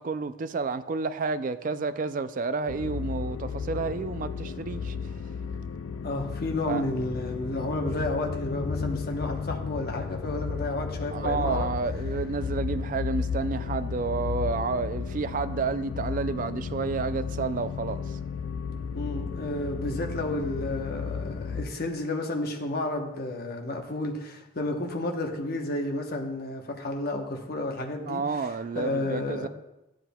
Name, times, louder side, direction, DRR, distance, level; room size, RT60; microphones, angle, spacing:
voice 1, 0.0-5.2 6.7-6.8 11.1-18.2 28.1-29.5, right 4 dB, 40° right, 0.3 m, -30 dB
sound 1, 2.7-21.6, left 5 dB, 80° left, 0.4 m, -33 dB
voice 2, 6.0-11.7 18.9-28.2 28.7-29.5, left 2 dB, 50° left, 0.9 m, -31 dB
11.5 x 7.5 x 2.2 m
head